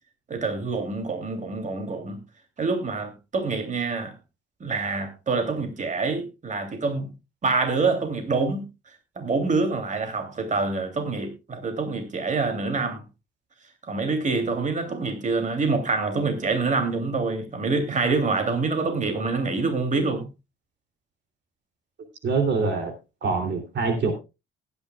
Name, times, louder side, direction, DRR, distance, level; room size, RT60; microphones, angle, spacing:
voice 1, 0.3-2.2 2.6-4.1 4.6-7.1 7.4-8.7 9.2-13.0 13.9-20.3, right 3 dB, 40° right, 3.0 m, -26 dB
voice 2, 22.2-22.9 23.2-24.2, right 4 dB, 60° right, 3.1 m, -24 dB
19.5 x 10.0 x 2.4 m
cardioid pair, 90°, 20 cm